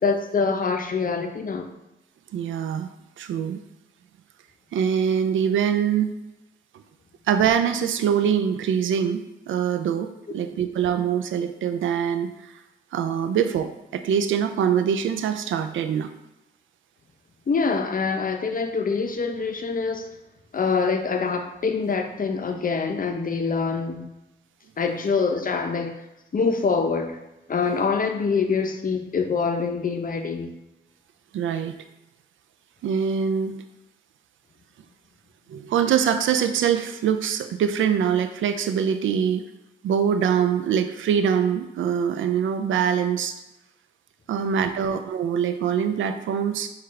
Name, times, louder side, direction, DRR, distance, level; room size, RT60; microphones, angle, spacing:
voice 1, 0.0-1.7 17.5-20.1 20.5-24.1 24.8-26.0 26.3-27.2 27.5-30.5 44.3-44.6, left 5 dB, 45° left, 5 dB, 0.6 m, -25 dB
voice 2, 2.3-2.9 3.2-3.6 4.7-6.1 7.3-12.5 12.9-16.1 31.3-31.8 32.8-33.5 35.5-39.4 39.8-43.3 44.3-46.7, right 8 dB, 80° right, 9 dB, 0.4 m, -23 dB
5.8 x 2.4 x 3.2 m, 0.96 s
supercardioid pair, 50°, 20 cm